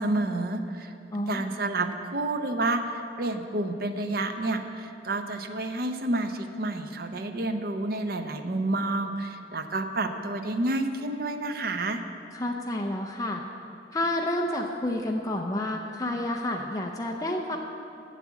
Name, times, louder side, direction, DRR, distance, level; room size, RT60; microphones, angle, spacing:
voice 1, 0.0-0.9 1.3-12.0, right 2 dB, 55° right, 7 dB, 0.7 m, -29 dB
voice 2, 1.1-1.5 12.3-13.4 13.9-17.6, left 1 dB, 20° left, 1 dB, 0.5 m, -29 dB
8.3 x 7.3 x 8.3 m, 2.7 s
head